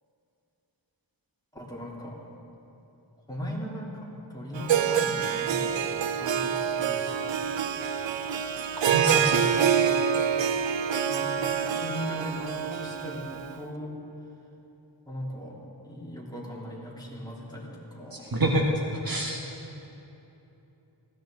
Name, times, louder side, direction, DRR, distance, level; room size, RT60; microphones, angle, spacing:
voice 1, 1.5-2.2 3.3-7.4 11.1-13.9 15.0-15.6 15.8-18.3, equal, 10° left, -5 dB, 3.4 m, -38 dB
Harp, 4.6-13.6, right 8 dB, 90° right, 0.6 m, -26 dB
voice 2, 8.9-9.5 18.1-19.4, right 1 dB, 50° right, 0 dB, 1.5 m, -27 dB
19.5 x 16.5 x 4.0 m, 3.0 s
wide cardioid pair, 70°, 43 cm